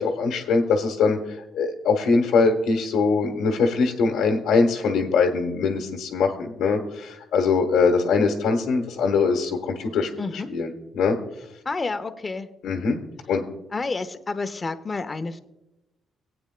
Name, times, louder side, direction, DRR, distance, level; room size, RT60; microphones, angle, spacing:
voice 1, 0.0-11.2 12.6-13.0 13.3-13.4, left 4 dB, 85° left, 1 dB, 1.3 m, -22 dB
voice 2, 11.6-12.5 13.7-15.4, left 3 dB, 30° left, 9 dB, 1.0 m, -29 dB
17.5 x 9.0 x 2.2 m, 0.93 s
cardioid pair, 90°, 0 cm